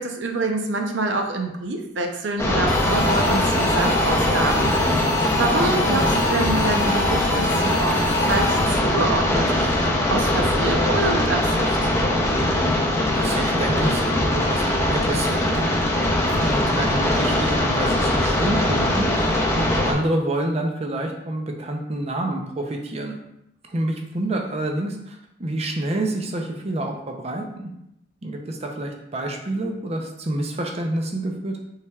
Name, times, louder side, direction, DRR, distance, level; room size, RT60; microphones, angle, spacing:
voice 1, 0.0-8.0 8.3-9.8 10.1-11.8, right 2 dB, 70° right, 4 dB, 0.6 m, -26 dB
sound 1, 2.4-19.9, left 1 dB, 15° left, 0.6 m, -21 dB
sound 2, 2.7-8.9, left 2 dB, 80° left, 0.7 m, -27 dB
voice 2, 5.6-6.1 13.1-23.2 23.7-27.7 28.2-31.6, right 1 dB, 35° right, 2 dB, 0.6 m, -28 dB
5.6 x 3.3 x 2.3 m, 0.82 s
head